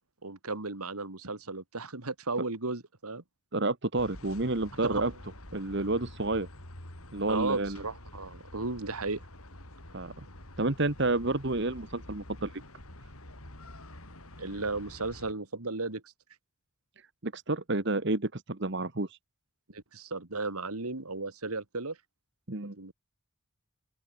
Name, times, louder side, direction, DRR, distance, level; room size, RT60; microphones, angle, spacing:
voice 1, 0.2-3.2 4.8-5.1 7.3-9.2 14.4-16.0 19.7-22.0 22.8-22.9, right 3 dB, 85° right, 2.5 m, -35 dB
voice 2, 3.5-5.1 5.5-6.5 7.1-7.8 9.9-10.1 10.6-12.5 17.2-19.2 22.5-22.8, right 2 dB, 55° right, 1.5 m, -30 dB
sound 1, 4.0-15.3, left 1 dB, 80° left, 6.1 m, -48 dB
open air
head